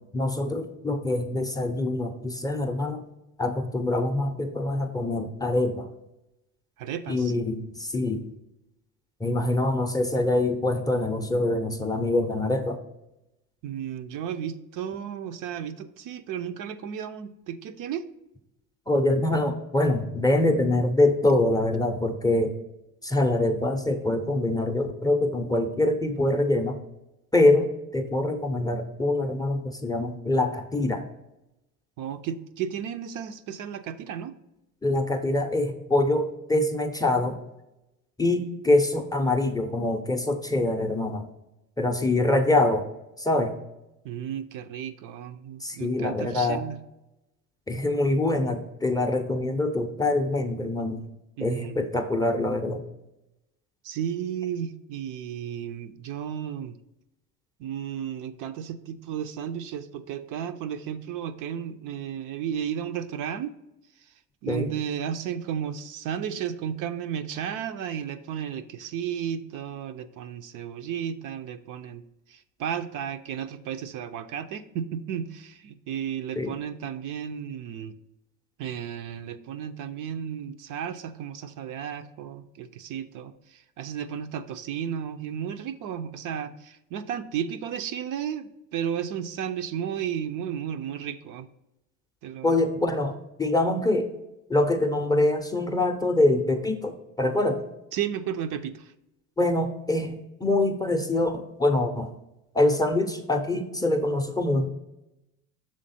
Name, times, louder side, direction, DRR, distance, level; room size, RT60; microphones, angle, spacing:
voice 1, 0.1-3.0 3.4-5.9 7.1-8.2 9.2-12.8 18.9-22.5 23.0-26.8 27.3-31.1 34.8-37.4 38.2-41.3 41.8-42.9 43.2-43.6 45.6-46.6 47.7-51.0 51.4-52.8 64.5-64.7 76.4-76.5 92.4-94.1 94.5-97.6 99.4-102.1 102.5-104.7, left 2 dB, 10° left, 5 dB, 0.5 m, -24 dB
voice 2, 6.8-7.3 13.6-18.1 32.0-34.3 42.1-42.4 44.0-46.8 51.4-51.8 53.8-56.7 57.6-63.5 64.0-64.1 64.4-72.0 72.3-77.9 78.6-91.5 92.2-92.6 97.9-98.9, right 9 dB, 55° right, 9 dB, 0.5 m, -33 dB
6.4 x 3.6 x 4.1 m, 0.91 s
supercardioid pair, 105°, 38 cm